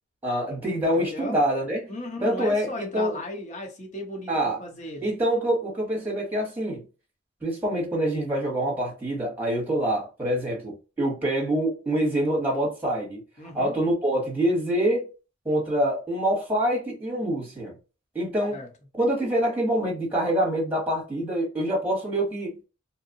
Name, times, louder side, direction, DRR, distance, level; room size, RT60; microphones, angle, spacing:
voice 1, 0.2-1.9 2.2-3.2 4.3-4.6 5.0-6.8 7.4-13.2 13.5-15.1 15.4-17.7 18.1-18.6 19.0-22.6, right 1 dB, 10° right, 0.9 m, -25 dB
voice 2, 1.0-1.4 1.9-5.1 13.4-13.7 18.5-18.7, left 1 dB, 35° left, 0.8 m, -36 dB
2.7 x 2.0 x 2.6 m
head